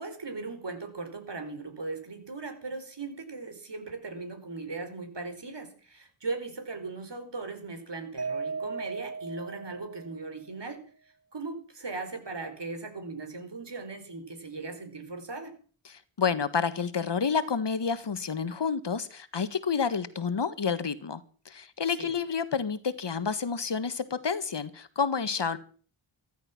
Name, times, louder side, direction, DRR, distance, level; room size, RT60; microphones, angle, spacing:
voice 1, 0.0-10.8 11.3-15.5 21.9-22.2, right 3 dB, 55° right, 7 dB, 4.8 m, -38 dB
Mallet percussion, 8.2-10.4, right 4 dB, 30° right, 1.7 m, -37 dB
voice 2, 15.9-25.6, left 6 dB, 55° left, 13 dB, 1.7 m, -29 dB
14.5 x 12.5 x 6.1 m, 0.42 s
cardioid pair, 40°, 50 cm